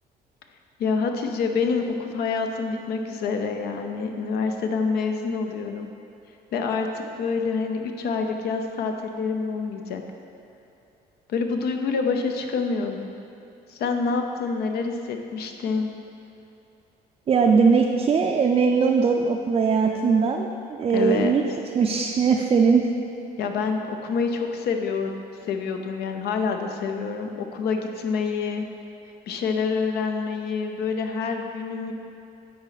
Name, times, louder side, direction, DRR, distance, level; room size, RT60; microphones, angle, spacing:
voice 1, 0.8-5.9 6.5-10.0 11.3-13.1 13.7-15.9 20.9-21.3 23.4-25.1 25.5-28.7 29.3-31.9, left 5 dB, 70° left, 5 dB, 0.7 m, -27 dB
voice 2, 17.3-21.4 21.7-22.9, right 5 dB, 35° right, 1 dB, 0.4 m, -20 dB
9.5 x 4.1 x 4.1 m, 2.8 s
cardioid pair, 110°, 17 cm